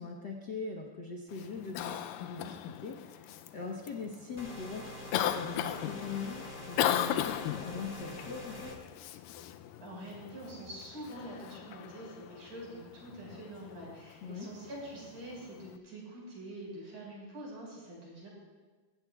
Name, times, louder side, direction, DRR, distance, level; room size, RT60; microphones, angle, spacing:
voice 1, 0.0-8.8 14.2-14.5, left 4 dB, 65° left, 0 dB, 1.0 m, -41 dB
Cough, 1.3-15.8, left 11 dB, 90° left, 2.3 m, -38 dB
sound 1, 4.4-8.8, left 1 dB, 15° left, 1.4 m, -45 dB
voice 2, 9.8-18.3, right 1 dB, 65° right, -4 dB, 6.8 m, -45 dB
23.0 x 16.0 x 2.4 m, 1.4 s
omnidirectional pair, 3.8 m